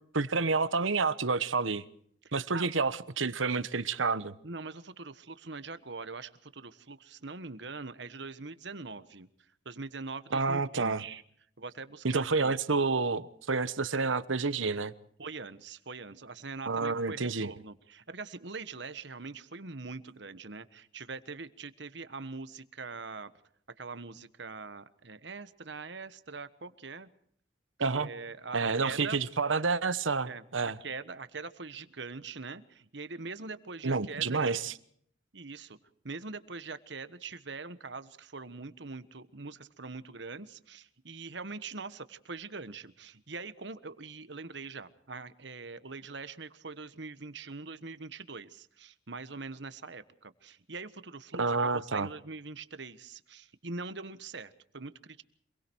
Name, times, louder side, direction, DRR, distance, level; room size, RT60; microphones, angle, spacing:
voice 1, 0.1-1.8 2.3-4.3 10.3-11.0 12.0-14.9 16.6-17.5 27.8-28.1 28.5-30.8 33.8-34.7 51.3-52.1, right 4 dB, 90° right, 1.2 m, -29 dB
voice 2, 2.2-2.7 4.4-9.3 9.6-11.2 11.6-12.5 15.2-23.3 23.8-27.1 27.9-29.2 30.2-34.6 35.3-35.8 36.0-55.2, right 4 dB, 65° right, 1.3 m, -43 dB
26.5 x 22.0 x 4.6 m
head